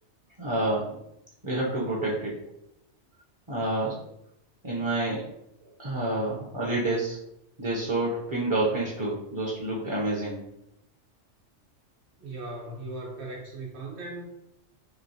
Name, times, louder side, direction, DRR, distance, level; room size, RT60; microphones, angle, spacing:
voice 1, 0.4-1.0 1.4-2.4 3.5-4.0 4.6-5.3 5.8-7.2 7.6-10.4, right 2 dB, 35° right, -5 dB, 0.5 m, -28 dB
voice 2, 12.2-14.2, right 2 dB, 70° right, -2 dB, 1.2 m, -38 dB
3.1 x 3.0 x 2.7 m, 0.82 s
omnidirectional pair, 1.2 m